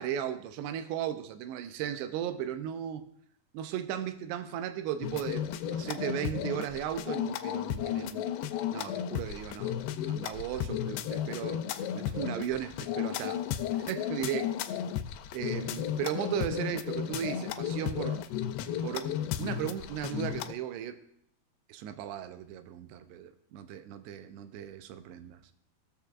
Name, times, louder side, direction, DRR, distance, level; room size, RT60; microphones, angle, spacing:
voice 1, 0.0-3.1 3.5-8.3 8.7-9.8 10.1-11.7 11.9-13.4 13.7-14.5 15.3-18.2 18.8-21.0 21.7-25.4, right 9 dB, 85° right, 10 dB, 2.6 m, -36 dB
sound 1, 5.0-20.5, left 10 dB, 85° left, 2.3 m, -34 dB
17.0 x 6.7 x 2.4 m, 0.71 s
omnidirectional pair, 4.8 m